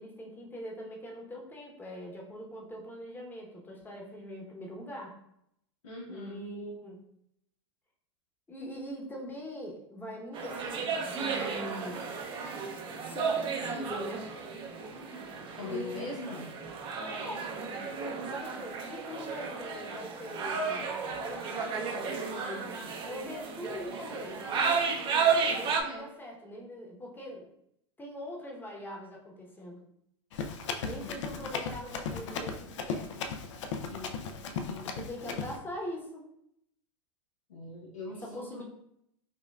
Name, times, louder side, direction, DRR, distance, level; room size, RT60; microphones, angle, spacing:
voice 1, 0.0-5.2 6.1-7.0 8.5-12.1 13.0-14.3 15.7-16.4 17.1-17.5 18.3-24.4 25.5-27.5 28.0-29.8 30.8-33.1 34.9-36.2 38.1-38.6, equal, 10° left, -1 dB, 0.9 m, -42 dB
voice 2, 5.8-6.4 15.6-16.6 25.8-26.0 30.8-31.2 33.8-34.3 34.6-34.9 37.5-38.6, left 2 dB, 90° left, -3 dB, 0.9 m, -42 dB
sound 1, 10.3-25.8, right 5 dB, 30° right, 0.6 m, -33 dB
Run, 30.3-35.6, left 5 dB, 70° left, 0.5 m, -36 dB
5.4 x 2.2 x 2.3 m, 0.74 s
hypercardioid pair, 110°, 16 cm